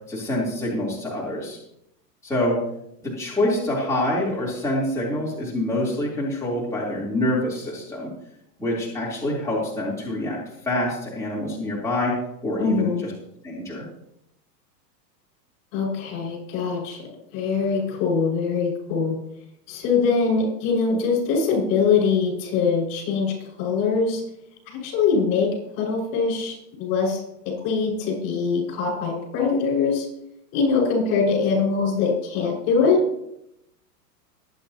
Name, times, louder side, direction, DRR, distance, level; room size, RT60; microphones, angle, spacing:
voice 1, 0.1-1.6 2.2-2.6 3.0-8.1 8.6-10.4 10.6-12.2 12.4-12.9 13.4-13.8, left 1 dB, 5° left, -6 dB, 3.6 m, -26 dB
voice 2, 12.6-13.0 15.7-19.2 19.7-24.2 24.7-25.5 25.8-30.1 30.5-33.0, left 5 dB, 45° left, -1 dB, 6.0 m, -23 dB
23.0 x 9.1 x 3.0 m, 0.79 s
hypercardioid pair, 125°, 49 cm